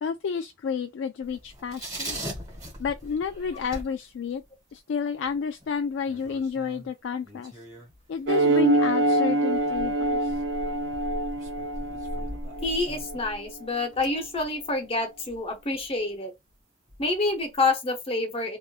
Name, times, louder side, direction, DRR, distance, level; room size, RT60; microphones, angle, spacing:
voice 1, 0.0-2.2 2.8-4.4 4.7-7.5 8.1-10.4, left 6 dB, 70° left, 0.3 m, -30 dB
sound 1, 1.2-4.5 4.7-4.8 5.2-8.3 8.8-16.1 16.5-16.6 16.9-17.7, equal, 20° right, 1.4 m, -40 dB
sound 2, 8.3-13.2, right 2 dB, 70° right, 0.4 m, -25 dB
voice 2, 12.6-16.3 17.0-18.6, left 2 dB, 30° left, 0.9 m, -27 dB
3.5 x 2.6 x 2.4 m
head